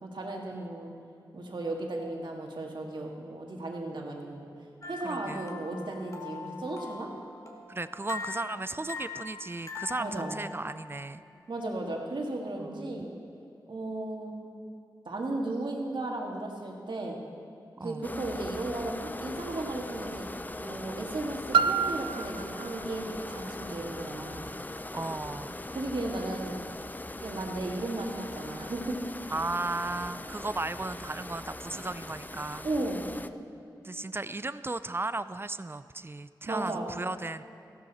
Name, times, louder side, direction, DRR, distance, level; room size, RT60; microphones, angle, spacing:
voice 1, 0.0-0.9 1.3-4.5 4.9-7.1 10.0-10.3 11.5-13.1 13.7-14.4 15.1-17.2 17.8-20.3 20.6-24.5 25.7-26.6 27.2-29.0 32.6-33.1 36.5-36.9, right 2 dB, 70° right, 0 dB, 2.0 m, -35 dB
sound 1, 4.8-11.1, left 4 dB, 40° left, 2.1 m, -42 dB
voice 2, 5.0-5.5 7.7-11.2 12.6-13.1 17.8-18.1 24.9-25.6 29.3-32.7 33.8-37.4, right 2 dB, 30° right, 14 dB, 0.5 m, -35 dB
sound 2, 18.0-33.3, left 1 dB, 20° left, 0.5 m, -40 dB
Piano, 21.5-27.0 27.7-27.8, right 5 dB, 90° right, 0.3 m, -32 dB
15.0 x 12.5 x 4.2 m, 2.7 s
cardioid pair, 45°, 8 cm